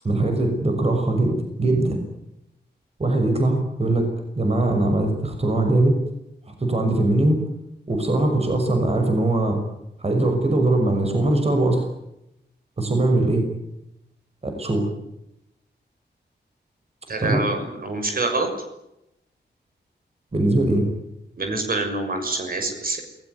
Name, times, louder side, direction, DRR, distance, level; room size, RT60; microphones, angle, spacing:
voice 1, 0.0-2.0 3.0-4.1 4.3-6.0 6.5-7.4 7.9-9.6 10.0-11.8 12.8-13.5 14.4-14.9 17.2-17.4 20.3-20.9, right 2 dB, 35° right, 4 dB, 6.1 m, -21 dB
voice 2, 17.1-18.5 21.4-23.0, right 2 dB, 55° right, 4 dB, 6.5 m, -26 dB
28.0 x 19.5 x 9.5 m, 0.85 s
wide cardioid pair, 165°, 18 cm